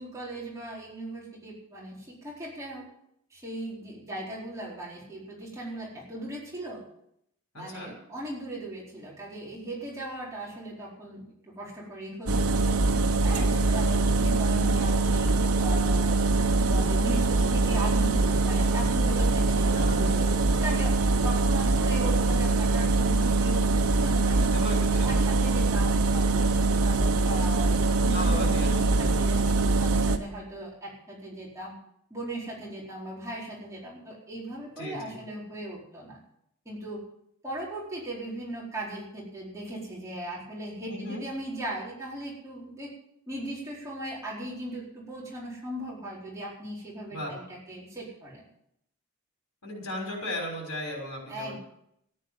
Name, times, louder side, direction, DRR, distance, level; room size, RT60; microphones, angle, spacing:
voice 1, 0.0-2.8 3.3-6.8 7.5-12.5 13.2-15.3 15.6-16.2 16.6-20.1 20.6-24.5 25.0-26.4 26.8-31.7 32.1-36.2 36.6-37.0 37.4-42.9 43.3-48.4 51.3-51.6, right 1 dB, 15° right, -5 dB, 4.4 m, -38 dB
voice 2, 7.5-8.0 13.3-13.7 19.7-20.3 24.5-25.3 28.0-29.1 34.8-35.2 40.9-41.2 47.1-47.4 49.6-51.6, left 1 dB, 90° left, 1 dB, 5.8 m, -37 dB
sound 1, 12.3-30.2, right 3 dB, 85° right, 1.3 m, -23 dB
14.0 x 10.0 x 7.6 m, 0.74 s
head